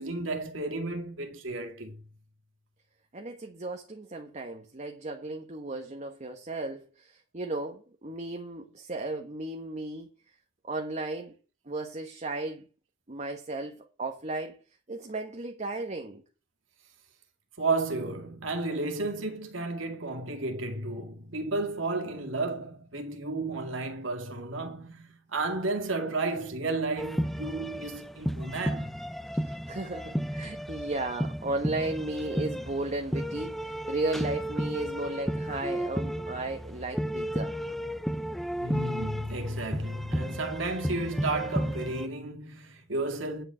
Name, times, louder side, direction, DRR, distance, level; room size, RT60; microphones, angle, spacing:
voice 1, 0.0-2.0 17.6-28.9 38.6-43.4, right 2 dB, 90° right, 2.3 m, -32 dB
voice 2, 3.1-10.1 10.7-11.3 11.7-12.7 13.1-14.6 14.9-16.2 29.3-37.5, right 2 dB, 35° right, 1.3 m, -35 dB
sound 1, 27.0-42.1, equal, ahead, 0.4 m, -33 dB
10.0 x 5.1 x 7.7 m
head